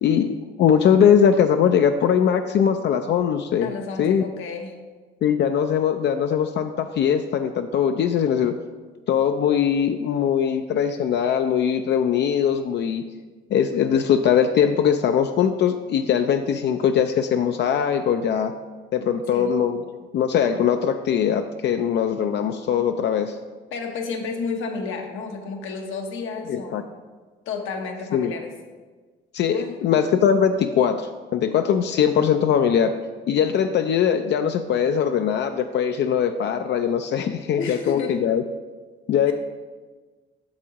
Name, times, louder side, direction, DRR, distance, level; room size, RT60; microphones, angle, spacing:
voice 1, 0.0-3.7 4.0-4.2 5.2-8.5 9.1-13.0 13.5-18.5 18.9-19.8 20.1-23.3 26.5-26.8 28.1-28.3 29.3-32.9 33.3-38.4 39.1-39.3, left 8 dB, 60° left, 7 dB, 0.4 m, -21 dB
voice 2, 3.6-4.8 19.0-19.5 23.7-26.9 27.5-28.5 29.5-29.8 37.6-38.2 39.3-39.4, left 4 dB, 85° left, 3 dB, 1.0 m, -31 dB
8.7 x 6.2 x 2.9 m, 1.4 s
cardioid pair, 90°, 20 cm